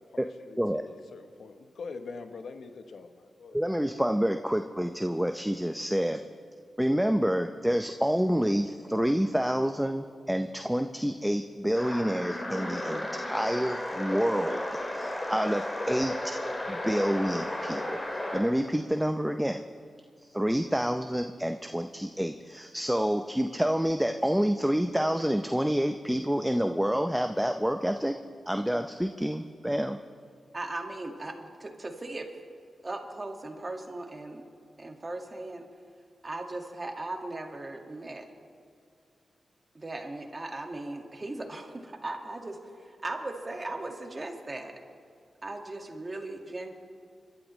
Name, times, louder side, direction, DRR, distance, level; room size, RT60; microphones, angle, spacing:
voice 1, 0.0-3.6, left 4 dB, 75° left, 7 dB, 0.9 m, -44 dB
voice 2, 3.5-6.2 6.8-14.6 14.9-16.1 16.7-18.0 18.3-19.6 20.3-28.2 28.5-30.0, equal, 5° right, 6 dB, 0.6 m, -28 dB
sound 1, 11.8-18.5, left 1 dB, 25° left, 2.3 m, -34 dB
voice 3, 30.5-32.3 32.8-34.4 34.8-35.6 36.2-38.3 39.7-44.7 45.4-46.7, right 2 dB, 30° right, 3 dB, 1.9 m, -38 dB
29.0 x 12.0 x 3.2 m, 2.3 s
cardioid pair, 80°, 0 cm